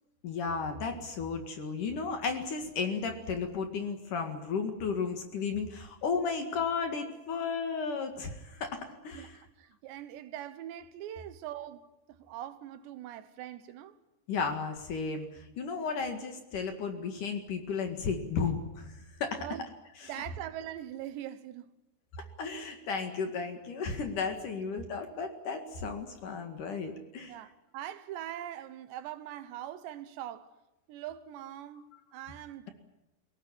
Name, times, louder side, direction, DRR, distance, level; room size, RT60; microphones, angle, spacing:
voice 1, 0.2-9.4 14.3-19.4 22.4-27.3 31.9-32.0, left 5 dB, 55° left, 3.0 m, -34 dB
voice 2, 9.6-11.8 12.1-14.0 19.4-19.6 20.1-21.7 27.3-30.5 30.9-32.7, right 12 dB, 75° right, 3.1 m, -42 dB
23.0 x 17.5 x 10.0 m
omnidirectional pair, 5.2 m